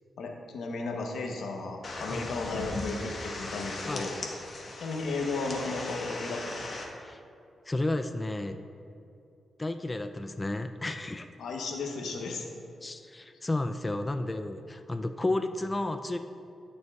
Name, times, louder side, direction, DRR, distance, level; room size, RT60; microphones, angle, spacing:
voice 1, 0.2-4.2 4.8-6.8 11.4-12.5, left 3 dB, 80° left, 2 dB, 0.9 m, -34 dB
sound 1, 1.8-6.9, left 2 dB, 50° left, 1.1 m, -38 dB
voice 2, 7.7-8.6 9.6-11.3 12.8-16.2, left 2 dB, 20° left, 7 dB, 0.3 m, -32 dB
13.5 x 5.3 x 2.3 m, 2.6 s
cardioid pair, 75°, 0 cm